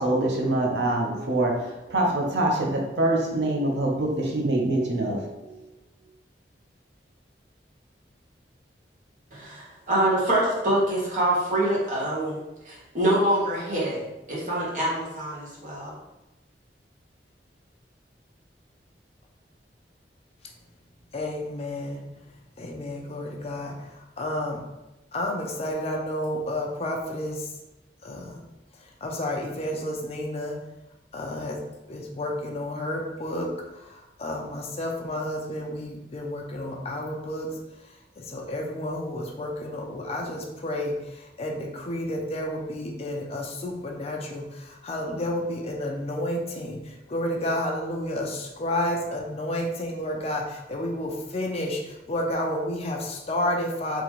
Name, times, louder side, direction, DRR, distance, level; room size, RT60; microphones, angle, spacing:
voice 1, 0.0-5.5, right 1 dB, 75° right, -1 dB, 0.7 m, -25 dB
voice 2, 9.3-12.4 12.6-15.9, right 1 dB, 45° right, -6 dB, 1.3 m, -25 dB
voice 3, 21.1-22.1 22.6-24.6 25.1-27.5 28.0-28.4 29.0-30.6 31.1-31.6 31.9-37.5 38.2-54.0, left 1 dB, 35° left, 0 dB, 0.5 m, -31 dB
3.7 x 2.9 x 3.0 m, 0.98 s
head